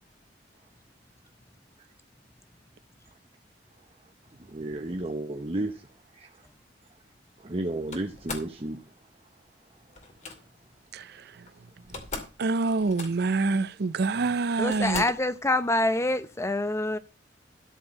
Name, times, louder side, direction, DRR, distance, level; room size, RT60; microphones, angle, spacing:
voice 1, 4.4-6.4 7.4-8.9 9.9-10.0, right 1 dB, 35° right, 0.9 m, -33 dB
Slam, 7.9-8.6 9.9-10.4 11.5-11.6 11.8-12.4 12.7-13.4 14.1-14.2 14.7-15.3, left 3 dB, 40° left, 2.5 m, -39 dB
voice 2, 12.4-15.0, right 3 dB, 60° right, 0.6 m, -26 dB
voice 3, 14.6-17.0, left 2 dB, 15° left, 0.7 m, -26 dB
13.0 x 4.6 x 7.5 m
head